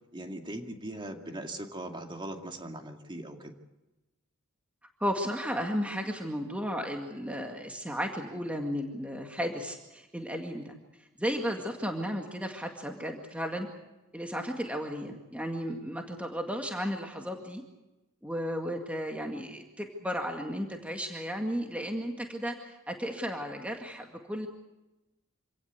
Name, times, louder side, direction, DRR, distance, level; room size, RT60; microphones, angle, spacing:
voice 1, 0.1-3.5, right 1 dB, 20° right, 4 dB, 2.3 m, -40 dB
voice 2, 5.0-13.7 14.1-17.6 18.2-24.5, equal, 5° right, 3 dB, 2.0 m, -34 dB
26.5 x 17.5 x 8.2 m, 1.0 s
head